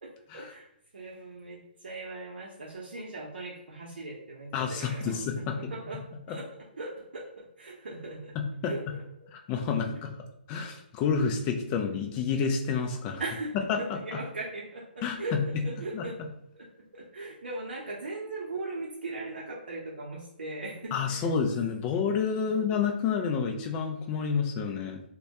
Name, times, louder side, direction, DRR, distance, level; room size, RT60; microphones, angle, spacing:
voice 1, 0.0-0.7 0.9-5.2 5.7-6.5 6.8-8.4 8.6-9.0 9.9-10.0 13.2-16.2 16.5-21.3 22.4-22.5, right 2 dB, 80° right, -4 dB, 0.6 m, -39 dB
voice 2, 4.5-5.7 6.3-6.4 8.4-8.7 9.5-10.1 10.5-13.2 13.7-14.2 15.0-15.2 15.9-16.0 20.9-25.0, left 6 dB, 30° left, 3 dB, 0.4 m, -29 dB
2.1 x 2.1 x 2.8 m, 0.76 s
hypercardioid pair, 140°, 6 cm